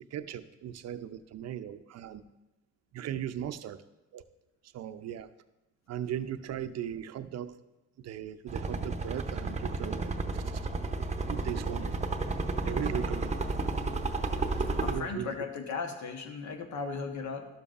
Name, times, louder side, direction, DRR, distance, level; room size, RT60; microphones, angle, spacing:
voice 1, 0.1-2.2 2.9-3.8 4.1-4.2 4.7-5.3 5.9-7.6 8.0-10.6 11.3-12.1 12.6-13.4 14.8-15.5, right 10 dB, 60° right, 11 dB, 0.5 m, -38 dB
sound 1, 8.5-15.0, right 3 dB, 25° right, 0.7 m, -32 dB
voice 2, 14.7-17.5, left 4 dB, 70° left, 5 dB, 1.0 m, -36 dB
12.0 x 7.0 x 2.5 m, 0.99 s
cardioid pair, 90°, 30 cm